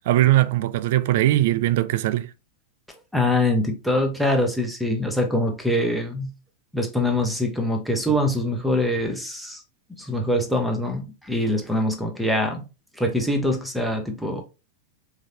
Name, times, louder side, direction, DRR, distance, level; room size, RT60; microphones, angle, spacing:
voice 1, 0.1-2.3, right 14 dB, 55° right, 0.4 m, -20 dB
voice 2, 3.1-6.3 6.7-9.6 10.0-12.7 13.0-14.4, left 1 dB, ahead, 1.1 m, -24 dB
3.8 x 3.2 x 2.8 m
figure-of-eight pair, 90°, 0 cm